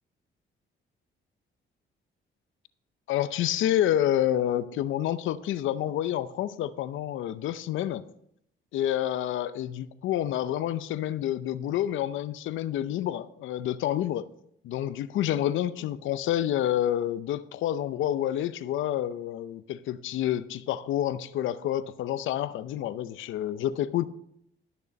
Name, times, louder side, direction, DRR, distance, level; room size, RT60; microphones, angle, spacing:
voice 1, 3.1-8.0 8.7-14.3 14.6-24.1, left 12 dB, 80° left, 0.6 m, -28 dB
12.0 x 6.8 x 5.2 m
cardioid pair, 90°, 20 cm